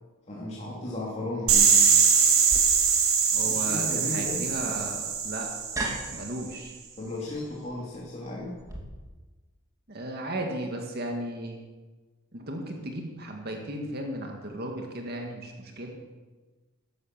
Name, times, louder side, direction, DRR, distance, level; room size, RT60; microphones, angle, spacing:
voice 1, 0.3-1.8 3.4-4.7 7.0-8.6, left 2 dB, 30° left, -5 dB, 2.6 m, -35 dB
sound 1, 1.5-6.3, right 6 dB, 85° right, 2.6 m, -23 dB
sound 2, 2.5-8.8, right 2 dB, 15° right, 2.6 m, -40 dB
voice 2, 3.3-5.5 6.1-6.8 9.9-11.6 12.3-16.0, right 1 dB, 50° right, 2 dB, 2.0 m, -35 dB
13.5 x 11.5 x 7.5 m, 1.3 s
head